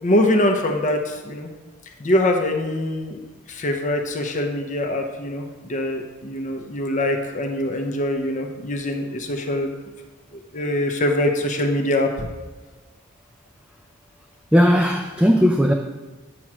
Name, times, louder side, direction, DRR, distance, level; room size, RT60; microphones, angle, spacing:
voice 1, 0.0-1.5 2.0-3.2 3.5-9.7 10.3-12.3, left 1 dB, 35° left, 4 dB, 0.7 m, -23 dB
voice 2, 14.5-15.7, equal, 5° right, 3 dB, 0.3 m, -17 dB
8.6 x 3.0 x 6.0 m, 1.2 s
head